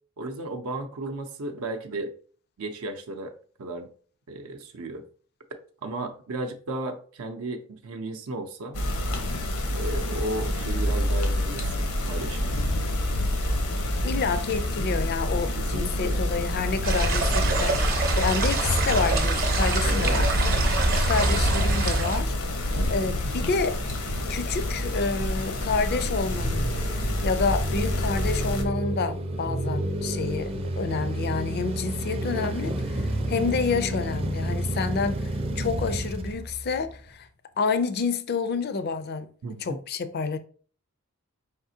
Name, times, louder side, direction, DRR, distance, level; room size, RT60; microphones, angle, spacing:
voice 1, 0.2-2.1 2.6-3.9 4.3-5.0 5.8-8.8 9.7-12.6 15.5-16.2 19.8-20.7 39.4-39.8, right 2 dB, 75° right, 0.6 m, -34 dB
sound 1, 8.7-28.6, left 1 dB, 90° left, 0.9 m, -27 dB
voice 2, 14.0-20.3 20.9-23.8 24.3-26.7 27.2-35.3 35.6-37.3 37.6-39.3 39.6-40.4, left 4 dB, 45° left, 0.4 m, -29 dB
sound 2, 16.8-22.2, right 2 dB, 45° right, 0.8 m, -25 dB
sound 3, 23.2-37.1, right 1 dB, 25° right, 0.5 m, -31 dB
4.9 x 3.6 x 2.7 m
head